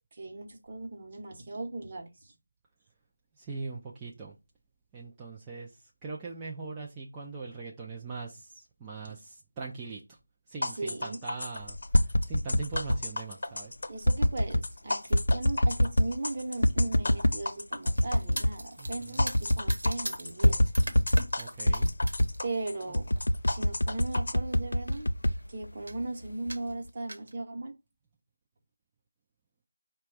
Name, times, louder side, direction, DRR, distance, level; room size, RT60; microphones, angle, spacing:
voice 1, 0.1-2.3 10.7-11.2 13.9-20.7 22.4-23.1 23.5-25.1 25.5-27.7, right 2 dB, 35° right, 0.9 m, -37 dB
voice 2, 3.4-4.4 4.9-10.0 10.5-11.8 12.3-13.7 18.8-19.3 21.4-21.9, right 4 dB, 10° right, 0.4 m, -41 dB
sound 1, 10.6-24.3, left 2 dB, 60° left, 0.9 m, -36 dB
sound 2, 11.7-13.0 14.0-14.7 15.1-16.2 16.6-17.4 17.9-18.6 18.9-19.0 19.2-20.0 20.4-21.3 21.7-22.4 22.9-26.0 26.5-26.9, left 1 dB, 90° left, 0.4 m, -25 dB
sound 3, 17.8-22.4 22.8-23.2 24.0-24.2 24.5-24.6 24.8-25.4 25.9-26.0 26.5-27.3, right 1 dB, 80° right, 1.0 m, -41 dB
5.0 x 2.2 x 4.6 m
figure-of-eight pair, 170°, 0 cm